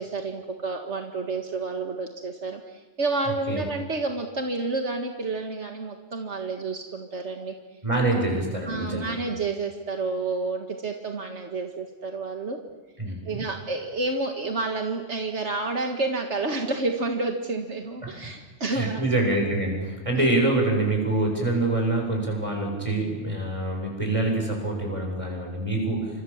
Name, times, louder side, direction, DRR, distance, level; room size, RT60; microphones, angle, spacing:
voice 1, 0.0-7.5 8.1-8.3 8.6-12.6 13.3-19.0 20.1-20.2, right 3 dB, 75° right, 3 dB, 2.2 m, -30 dB
voice 2, 7.8-9.1 13.0-13.4 18.7-26.1, right 2 dB, 25° right, 1 dB, 7.8 m, -25 dB
29.5 x 26.0 x 7.4 m, 1.2 s
omnidirectional pair, 1.2 m